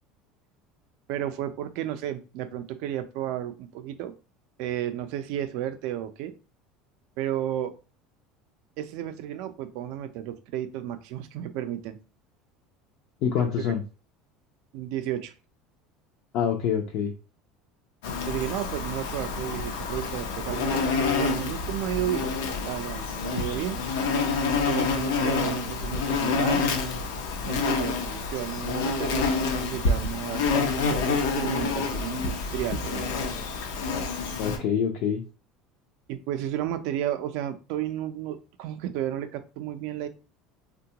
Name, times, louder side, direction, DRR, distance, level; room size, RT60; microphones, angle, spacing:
voice 1, 1.1-4.1 4.6-6.3 7.2-7.7 8.8-12.0 14.7-15.3 18.3-22.3 22.6-23.8 24.7-26.6 27.4-29.3 29.6-30.4 31.0-33.3 36.1-40.1, right 11 dB, 55° right, 10 dB, 0.4 m, -32 dB
voice 2, 13.2-13.8 16.3-17.1 34.4-35.2, left 7 dB, 45° left, 1 dB, 0.4 m, -26 dB
Insect, 18.0-34.6, left 4 dB, 85° left, 0.6 m, -28 dB
3.6 x 2.2 x 2.8 m, 0.33 s
cardioid pair, 180°, 0 cm